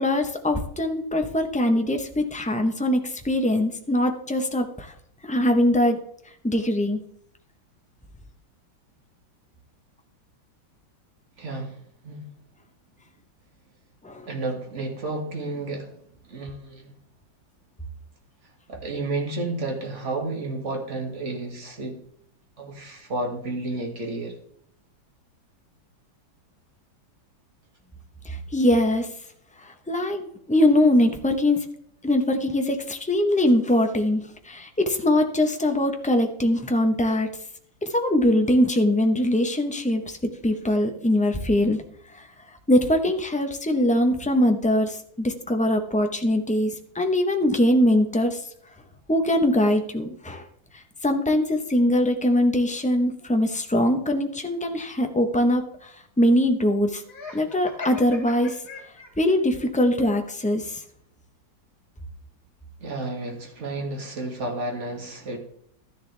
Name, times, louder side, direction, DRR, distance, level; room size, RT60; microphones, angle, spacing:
voice 1, 0.0-4.9 5.2-6.0 6.4-7.0 14.0-14.3 28.2-29.1 29.6-31.6 32.0-37.3 37.8-40.2 40.4-41.8 42.7-48.4 49.1-50.4 50.7-57.0 57.3-58.6 59.2-60.8, left 1 dB, 10° left, 5 dB, 0.4 m, -22 dB
voice 2, 11.4-12.3 14.2-16.0 16.3-16.9 18.7-22.0 22.6-24.4 62.8-65.4, right 2 dB, 35° right, 2 dB, 2.4 m, -31 dB
Laughter, 57.1-59.4, left 3 dB, 75° left, 3.0 m, -39 dB
12.5 x 10.5 x 3.4 m, 0.67 s
omnidirectional pair, 2.1 m